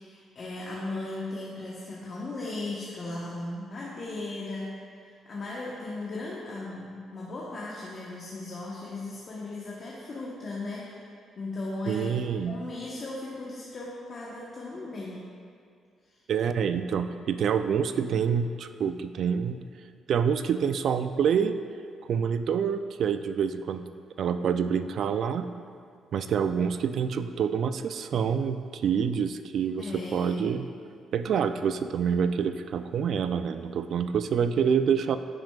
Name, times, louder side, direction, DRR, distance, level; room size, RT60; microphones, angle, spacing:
voice 1, 0.0-4.8 5.0-11.0 11.4-12.1 12.4-15.3 16.0-16.2 29.8-30.6, left 2 dB, 45° left, -5 dB, 1.0 m, -37 dB
voice 2, 11.9-12.6 16.3-19.6 20.1-21.6 22.0-23.9 24.2-25.5 26.1-30.7 31.1-35.2, right 7 dB, 65° right, 10 dB, 0.3 m, -27 dB
10.0 x 5.9 x 2.3 m, 2.3 s
cardioid pair, 90°, 0 cm